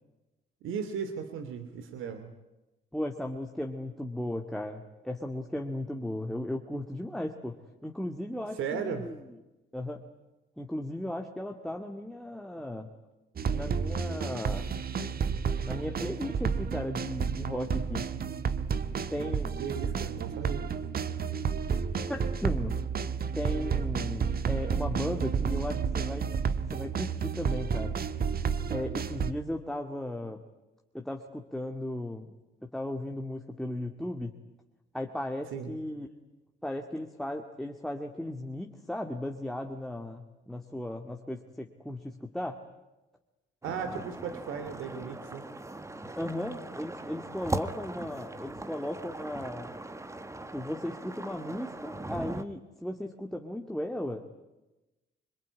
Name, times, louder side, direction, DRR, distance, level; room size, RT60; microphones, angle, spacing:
voice 1, 0.6-2.3 8.5-9.1 19.6-20.6 35.5-35.7 43.6-45.4, right 6 dB, 85° right, 9 dB, 2.6 m, -36 dB
voice 2, 2.9-9.2 9.7-10.0 10.6-12.9 13.5-14.7 15.7-18.1 19.1-19.5 22.1-22.8 23.3-26.3 26.7-28.0 28.7-30.4 30.9-32.4 32.7-34.4 34.9-36.1 36.6-42.6 46.2-49.7 50.5-54.3, left 1 dB, ahead, 2 dB, 2.3 m, -36 dB
sound 1, 13.4-29.3, right 6 dB, 50° right, 1.5 m, -31 dB
sound 2, 43.6-52.4, right 2 dB, 15° right, 1.6 m, -39 dB
26.5 x 22.0 x 9.8 m, 1.0 s
cardioid pair, 90°, 20 cm